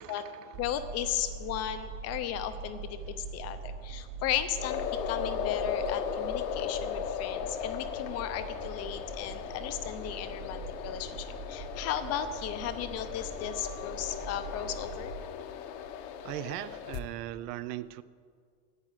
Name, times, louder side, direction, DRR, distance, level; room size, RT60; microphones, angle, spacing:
voice 1, 0.0-0.6 16.2-18.0, right 14 dB, 75° right, 16 dB, 0.7 m, -39 dB
sound 1, 0.5-15.3, right 5 dB, 30° right, 0.8 m, -43 dB
voice 2, 0.6-15.1, left 10 dB, 30° left, 10 dB, 0.6 m, -35 dB
sound 2, 4.6-17.0, left 8 dB, 80° left, 1.2 m, -37 dB
10.5 x 9.0 x 9.0 m, 2.1 s
cardioid pair, 165°, 48 cm